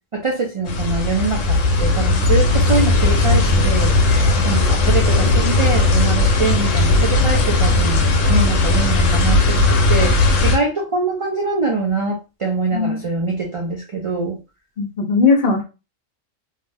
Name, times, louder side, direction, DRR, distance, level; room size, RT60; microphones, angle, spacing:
voice 1, 0.1-4.0 4.4-8.0 8.3-14.4, right 3 dB, 55° right, 0 dB, 0.3 m, -23 dB
sound 1, 0.7-10.6, left 2 dB, 75° left, 1.0 m, -16 dB
voice 2, 12.7-13.0 14.8-15.6, left 4 dB, 50° left, 0 dB, 0.9 m, -18 dB
2.8 x 2.0 x 3.4 m, 0.28 s
omnidirectional pair, 1.3 m